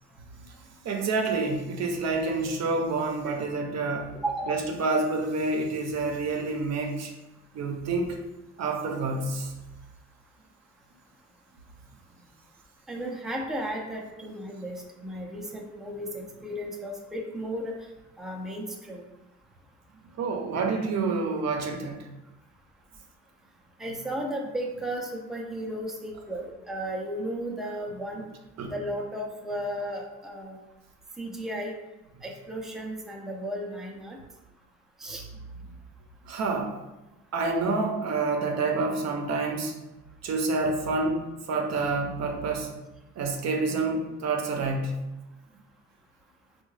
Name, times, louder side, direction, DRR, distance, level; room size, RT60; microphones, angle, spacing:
voice 1, 0.8-4.1 4.5-7.1 7.5-8.2 8.6-9.5 20.2-22.0 28.6-28.7 36.3-36.7 37.3-39.8 40.2-42.7 43.2-45.0, right 3 dB, 60° right, 2 dB, 0.6 m, -28 dB
voice 2, 4.2-4.6 12.9-17.7 18.2-19.1 23.8-28.2 28.7-30.6 31.2-31.7 32.2-34.2 35.0-35.2, right 1 dB, ahead, -1 dB, 0.5 m, -34 dB
3.6 x 2.3 x 3.1 m, 1.0 s
cardioid pair, 90°, 30 cm